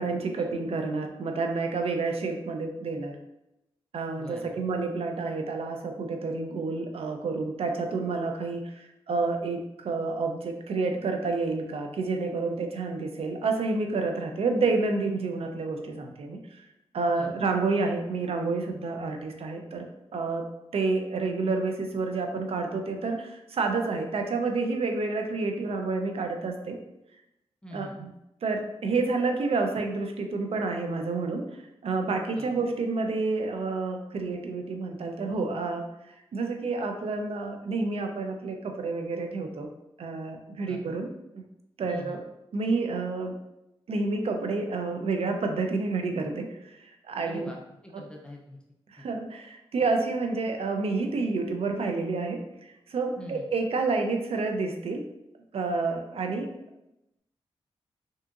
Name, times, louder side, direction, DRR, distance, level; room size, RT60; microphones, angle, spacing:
voice 1, 0.0-3.2 3.9-16.7 16.9-19.9 20.1-20.5 20.7-26.8 27.7-28.1 28.4-39.7 40.0-41.1 41.8-42.2 42.5-43.4 43.9-47.5 48.9-55.0 55.5-56.5, right 3 dB, 70° right, 4 dB, 0.5 m, -29 dB
voice 2, 4.2-4.5 17.1-17.3 27.6-27.9 32.3-32.5 40.7-40.8 41.9-42.2 47.2-48.6 49.0-49.1 53.2-53.4, equal, 10° left, 0 dB, 0.5 m, -43 dB
3.6 x 2.8 x 2.4 m, 0.87 s
cardioid pair, 55°, 11 cm